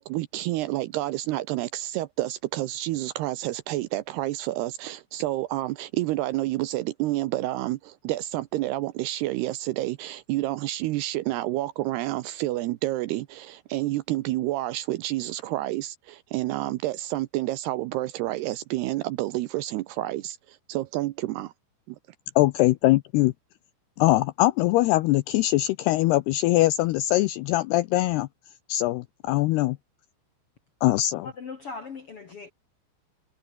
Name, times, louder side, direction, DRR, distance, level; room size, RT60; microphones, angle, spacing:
voice 1, 0.0-21.5, right 16 dB, 80° right, 2.5 m, -29 dB
voice 2, 22.4-23.3 24.0-28.3 28.7-29.8 30.8-31.3, left 17 dB, 80° left, 2.3 m, -22 dB
voice 3, 31.2-32.5, left 4 dB, 55° left, 1.6 m, -39 dB
omnidirectional pair, 5.3 m